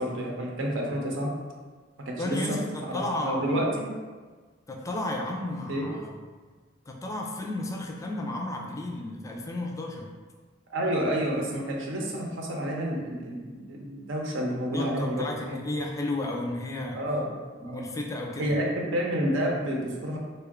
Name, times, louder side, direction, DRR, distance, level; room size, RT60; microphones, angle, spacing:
voice 1, 0.0-1.3 2.1-2.6 2.8-3.9 5.7-5.9 10.7-15.7 16.9-17.3 17.6-17.8 18.4-20.2, equal, 85° right, -1 dB, 0.7 m, -29 dB
voice 2, 2.1-3.7 4.7-6.1 6.9-10.1 14.7-17.0 17.6-18.6, left 2 dB, 15° left, 0 dB, 0.4 m, -33 dB
3.6 x 2.3 x 3.5 m, 1.4 s
head